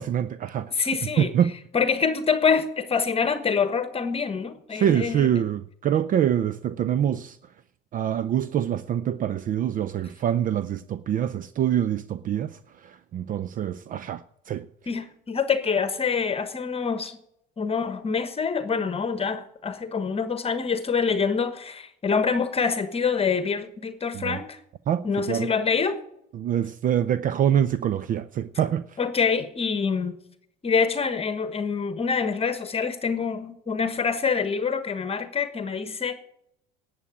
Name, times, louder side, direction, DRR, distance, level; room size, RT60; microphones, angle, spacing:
voice 1, 0.0-0.9 1.2-1.5 4.7-7.4 7.9-14.7 24.1-24.4 24.9-25.5 26.3-29.0, right 10 dB, 40° right, 0.5 m, -25 dB
voice 2, 0.7-1.3 1.7-5.3 14.9-17.2 17.6-24.6 25.0-26.0 29.0-30.2 30.6-36.1, left 5 dB, 30° left, 1.2 m, -26 dB
11.0 x 8.6 x 8.7 m
supercardioid pair, 90°, 21 cm